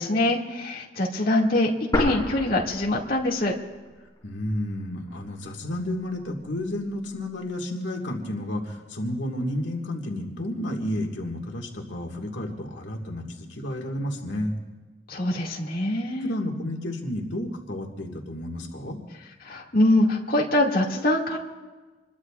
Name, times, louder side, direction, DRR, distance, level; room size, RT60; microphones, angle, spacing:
voice 1, 0.0-3.5 15.1-16.3 19.4-21.4, left 1 dB, 55° left, -2 dB, 2.2 m, -24 dB
sound 1, 1.9-3.9 4.2-4.3 5.0-5.9, left 1 dB, 20° left, 4.9 m, -30 dB
voice 2, 4.2-14.6 16.2-19.0, left 1 dB, 90° left, 1 dB, 1.9 m, -31 dB
27.0 x 22.0 x 2.4 m, 1.3 s
head